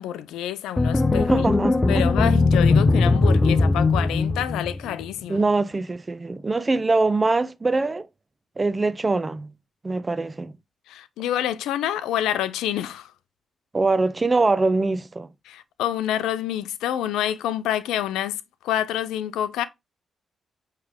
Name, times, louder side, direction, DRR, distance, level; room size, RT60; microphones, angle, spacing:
voice 1, 0.0-1.5 1.9-5.5 10.9-13.1 15.4-19.6, left 11 dB, 85° left, 0.4 m, -27 dB
sound 1, 0.8-5.0, left 3 dB, 30° left, 0.8 m, -19 dB
voice 2, 1.3-2.1 5.3-8.1 8.6-9.5 9.8-10.5 13.7-15.3, right 3 dB, 30° right, 0.6 m, -23 dB
8.5 x 3.3 x 3.5 m
supercardioid pair, 50°, 0 cm